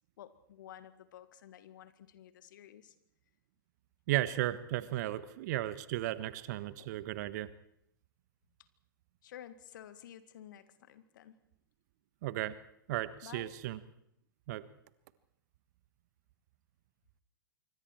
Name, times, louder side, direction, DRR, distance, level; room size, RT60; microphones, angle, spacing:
voice 1, 0.2-3.0 6.8-6.9 9.2-11.4 13.2-13.5, left 11 dB, 60° left, 12 dB, 1.9 m, -52 dB
voice 2, 4.1-7.5 12.2-12.5 12.9-13.8 14.5-14.6, right 15 dB, 50° right, 15 dB, 1.4 m, -35 dB
26.0 x 24.0 x 4.6 m, 0.76 s
figure-of-eight pair, 105°, 12 cm